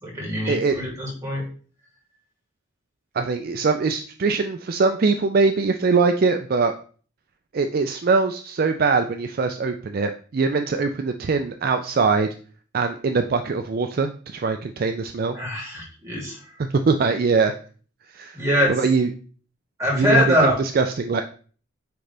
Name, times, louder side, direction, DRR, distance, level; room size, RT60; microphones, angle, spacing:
voice 1, 0.0-1.4 15.3-16.4 18.3-18.7 19.8-20.6, equal, 15° right, -4 dB, 2.9 m, -23 dB
voice 2, 3.1-6.7 7.5-12.3 12.7-15.4 16.9-17.5 18.1-18.4 18.7-19.1 19.9-21.2, right 4 dB, 45° right, 7 dB, 0.4 m, -22 dB
9.3 x 3.8 x 3.4 m, 0.42 s
head